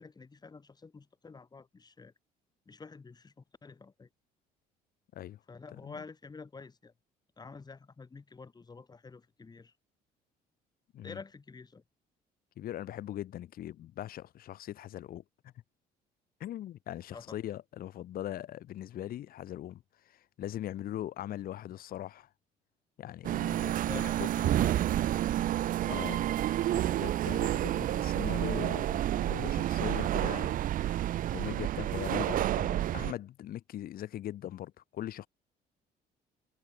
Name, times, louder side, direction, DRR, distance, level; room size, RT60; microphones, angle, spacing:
voice 1, 0.0-2.1 2.7-4.1 5.5-6.9 7.4-9.7 11.0-11.8 17.1-17.4 23.8-25.1 25.4-25.6, left 4 dB, 25° left, 4.3 m, -49 dB
voice 2, 5.7-6.0 10.9-11.2 12.6-15.5 16.4-22.3 23.0-24.3 25.9-30.6 31.3-35.3, left 12 dB, 60° left, 1.3 m, -41 dB
sound 1, 23.2-33.1, right 13 dB, 55° right, 0.5 m, -30 dB
cardioid pair, 110°, 17 cm